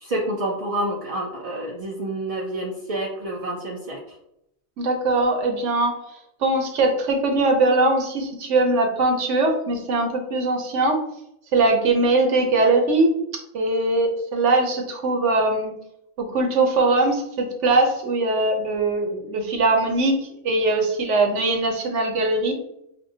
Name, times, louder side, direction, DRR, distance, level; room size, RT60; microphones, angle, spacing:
voice 1, 0.0-4.0, right 1 dB, 50° right, -2 dB, 0.4 m, -28 dB
voice 2, 4.8-5.9 6.4-11.0 11.5-13.1 13.5-15.7 16.3-22.5, right 2 dB, 75° right, 3 dB, 1.1 m, -21 dB
5.2 x 2.5 x 2.7 m, 0.79 s
omnidirectional pair, 1.3 m